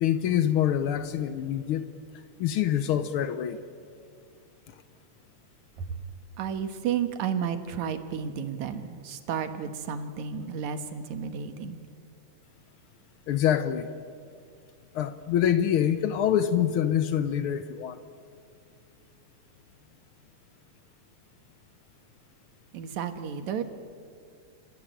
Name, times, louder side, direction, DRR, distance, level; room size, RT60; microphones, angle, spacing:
voice 1, 0.0-1.9 2.4-3.6 13.3-13.9 14.9-18.0, left 10 dB, 85° left, 12 dB, 1.1 m, -25 dB
voice 2, 6.4-11.8 22.7-23.6, right 7 dB, 70° right, 9 dB, 2.6 m, -32 dB
28.0 x 15.0 x 9.2 m, 2.3 s
omnidirectional pair, 3.5 m